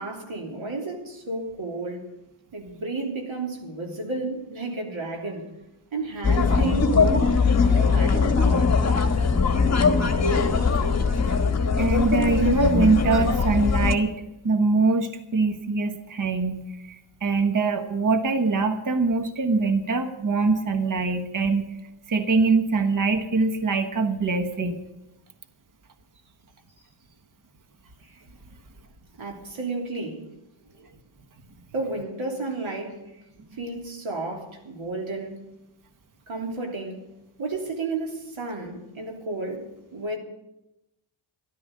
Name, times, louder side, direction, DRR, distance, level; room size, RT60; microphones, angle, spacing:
voice 1, 0.0-2.1 2.5-5.5 5.9-8.8 28.0-28.2 29.2-30.2 31.7-33.2 33.5-35.4 36.3-37.1 37.4-40.2, right 3 dB, 70° right, 3.3 m, -32 dB
sound 1, 6.2-13.9, left 4 dB, 30° left, 1.5 m, -21 dB
voice 2, 11.8-14.1 14.4-21.7 22.1-24.8, right 3 dB, 40° right, 1.4 m, -23 dB
12.5 x 12.0 x 6.6 m
cardioid pair, 90°, 49 cm